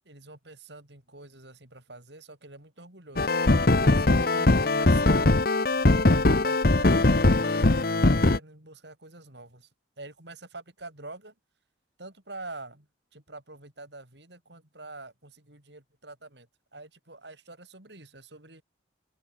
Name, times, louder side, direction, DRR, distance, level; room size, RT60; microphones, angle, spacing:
voice 1, 0.1-3.3 3.8-5.4 6.0-9.7 10.0-11.3 12.0-18.6, right 2 dB, 65° right, 5.6 m, -45 dB
sound 1, 3.2-8.4, left 2 dB, 50° left, 1.0 m, -21 dB
open air
head